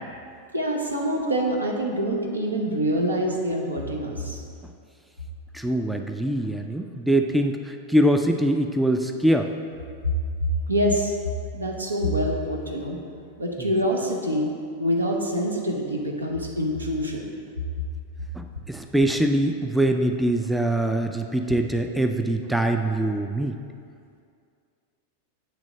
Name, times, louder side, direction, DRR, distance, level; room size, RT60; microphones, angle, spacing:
voice 1, 0.5-4.4 10.0-10.1 10.4-11.2 11.5-13.0 13.4-14.5 14.8-17.3, equal, 80° right, 0 dB, 0.9 m, -25 dB
voice 2, 5.5-9.5 18.4-23.6, right 1 dB, 5° right, 5 dB, 0.3 m, -23 dB
8.7 x 3.4 x 5.0 m, 2.3 s
figure-of-eight pair, 90°, 0 cm